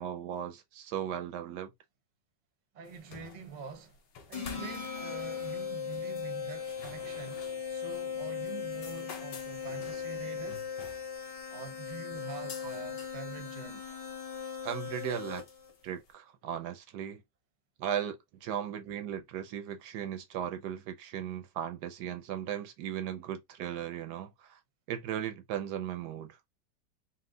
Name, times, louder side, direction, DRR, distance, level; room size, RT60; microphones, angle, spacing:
voice 1, 0.0-1.7 14.6-15.4 15.8-17.2 17.8-18.2 18.4-24.6 24.9-26.4, right 9 dB, 75° right, 1.1 m, -37 dB
voice 2, 2.7-4.0 4.3-10.6 11.5-13.9, right 5 dB, 40° right, 0.6 m, -45 dB
sound 1, 2.9-16.1, left 5 dB, 75° left, 1.5 m, -52 dB
sound 2, 4.3-15.7, left 7 dB, 35° left, 0.6 m, -38 dB
4.3 x 2.1 x 3.7 m
omnidirectional pair, 1.9 m